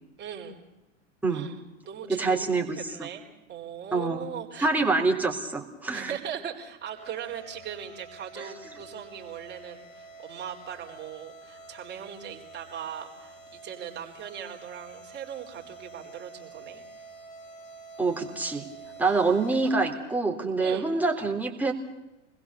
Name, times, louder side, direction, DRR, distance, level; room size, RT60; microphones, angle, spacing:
voice 1, 0.2-0.6 1.3-1.6 1.9-2.4 2.7-3.2 3.5-4.7 5.9-16.8 19.0-19.2 20.6-20.9, right 9 dB, 25° right, 1 dB, 4.4 m, -39 dB
voice 2, 2.1-3.1 3.9-4.3 4.6-6.2 8.4-8.5 18.0-18.7 19.0-21.7, right 3 dB, 5° right, 0 dB, 3.5 m, -26 dB
sound 1, 6.9-19.7, right 2 dB, 50° left, 7.9 m, -48 dB
28.5 x 21.0 x 7.0 m, 1.0 s
figure-of-eight pair, 95°, 38 cm